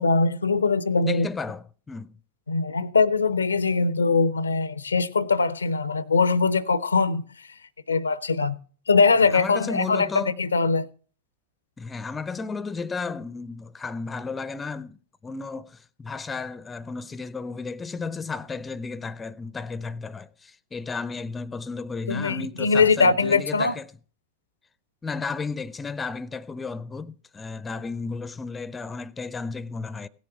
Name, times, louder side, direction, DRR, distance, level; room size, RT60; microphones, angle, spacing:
voice 1, 0.0-1.3 2.5-7.3 7.9-8.6 8.9-10.9 22.1-23.7, left 4 dB, 75° left, 0.5 m, -22 dB
voice 2, 1.0-2.2 9.2-10.4 11.8-15.0 15.2-23.9 25.0-30.1, left 4 dB, 15° left, 0.5 m, -33 dB
17.0 x 7.0 x 5.7 m
figure-of-eight pair, 90°, 0 cm